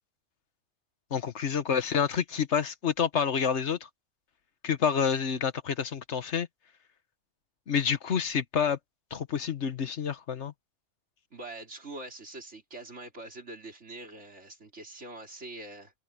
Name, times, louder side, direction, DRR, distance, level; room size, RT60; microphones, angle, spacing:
voice 1, 1.1-3.8 4.6-6.5 7.7-8.8 9.1-10.5, left 7 dB, 70° left, 1.4 m, -28 dB
voice 2, 11.3-15.9, right 2 dB, 70° right, 4.3 m, -44 dB
omnidirectional pair, 1.2 m